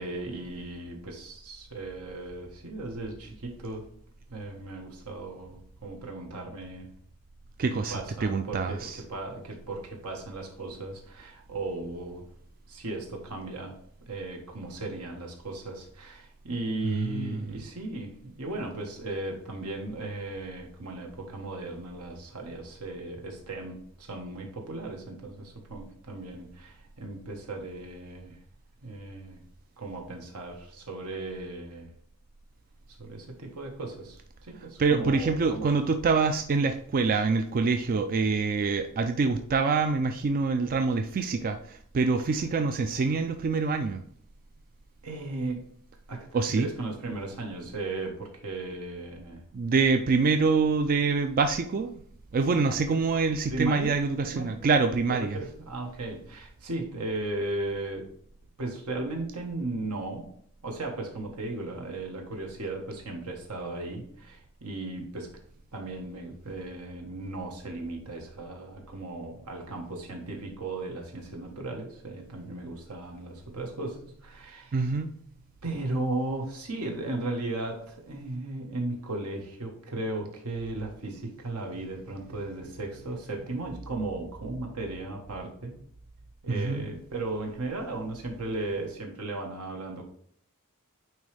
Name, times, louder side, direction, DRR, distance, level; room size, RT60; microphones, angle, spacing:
voice 1, 0.0-3.9 4.3-6.9 7.9-12.3 12.7-13.8 14.1-28.4 28.8-29.4 29.8-31.9 33.0-35.8 42.3-42.4 45.0-45.6 46.1-49.4 52.7-52.8 53.5-53.9 54.3-54.7 55.3-58.1 58.6-60.3 60.6-65.3 65.7-74.8 75.6-85.8 86.4-90.1, right 2 dB, 80° right, 2 dB, 1.4 m, -36 dB
voice 2, 7.6-9.0 16.8-17.4 34.8-44.0 46.3-46.7 49.5-52.0 52.3-55.4 74.7-75.1 86.5-86.9, right 4 dB, 40° right, 7 dB, 0.4 m, -26 dB
9.1 x 3.1 x 3.3 m, 0.62 s
head